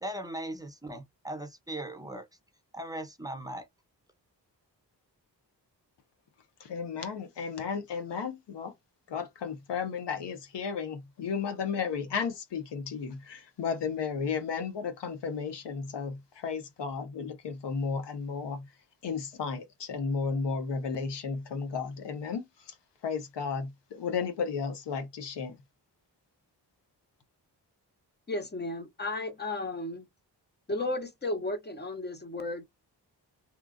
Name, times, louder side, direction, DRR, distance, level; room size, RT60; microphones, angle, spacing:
voice 1, 0.0-2.3 2.7-3.7, right 1 dB, 10° right, 0.9 m, -38 dB
voice 2, 6.6-8.7 9.1-18.7 19.0-22.7 23.0-25.6, left 5 dB, 90° left, 0.9 m, -34 dB
voice 3, 28.3-30.0 30.7-32.6, left 2 dB, 25° left, 0.9 m, -34 dB
3.0 x 2.3 x 2.5 m
cardioid pair, 60°, 41 cm